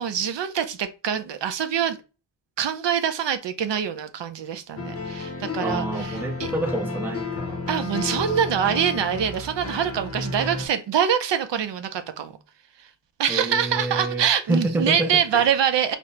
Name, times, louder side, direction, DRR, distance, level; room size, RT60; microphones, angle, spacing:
voice 1, 0.0-2.0 2.6-6.5 7.7-12.3 13.2-16.0, right 8 dB, 65° right, 0.6 m, -24 dB
sound 1, 4.8-10.7, left 3 dB, 30° left, 0.7 m, -31 dB
voice 2, 5.6-7.6 13.3-15.5, right 1 dB, 5° right, 0.4 m, -28 dB
4.2 x 2.1 x 2.8 m
wide cardioid pair, 130°, 47 cm